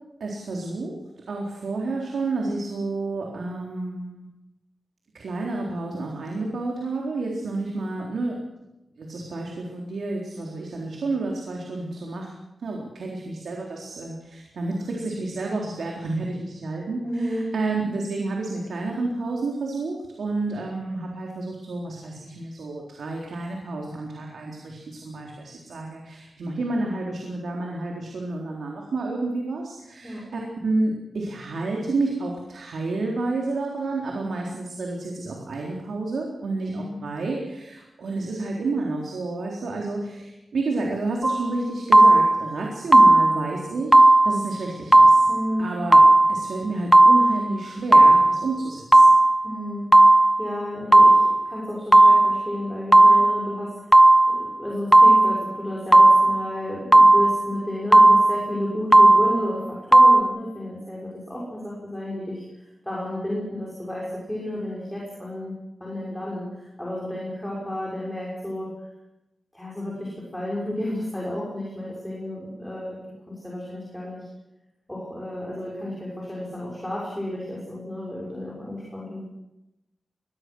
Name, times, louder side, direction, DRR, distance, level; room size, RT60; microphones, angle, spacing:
voice 1, 0.2-1.0 1.3-4.3 5.1-8.4 9.0-12.3 12.6-45.3 45.6-46.0 46.3-49.0, right 2 dB, 90° right, -1 dB, 3.9 m, -30 dB
voice 2, 17.0-17.5 30.0-30.2 36.7-37.0 45.3-45.7 49.4-54.0 54.3-65.5 65.8-68.7 69.5-73.0 73.3-74.3 74.9-79.2, left 1 dB, 5° left, -5 dB, 6.2 m, -32 dB
sound 1, 41.2-41.5 41.9-42.5 42.9-43.5 43.9-44.5 44.9-45.5 45.9-46.5 46.9-47.5 47.9-48.5 48.9-49.5 49.9-50.5 50.9-51.5 51.9-52.5 52.9-53.5 53.9-54.5 54.9-55.5 55.9-56.5 56.9-57.5 57.9-58.5 58.9-59.5 59.9-60.2, right 2 dB, 15° right, 0.8 m, -14 dB
24.0 x 20.0 x 6.4 m, 0.93 s
wide cardioid pair, 150°, 0 cm